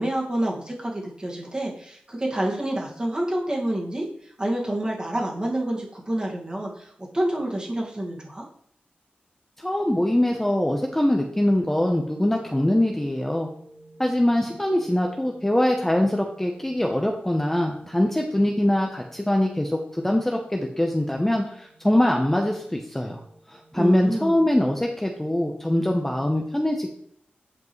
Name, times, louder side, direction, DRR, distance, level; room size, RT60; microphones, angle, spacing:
voice 1, 0.0-8.4 23.7-24.4, right 1 dB, 25° right, -2 dB, 1.8 m, -28 dB
voice 2, 9.6-13.5 14.0-23.2 23.5-26.9, left 1 dB, 10° left, 1 dB, 0.7 m, -23 dB
sound 1, 11.6-24.4, right 1 dB, 45° left, 2.2 m, -52 dB
9.5 x 5.3 x 3.1 m, 0.67 s
wide cardioid pair, 100°, 4 cm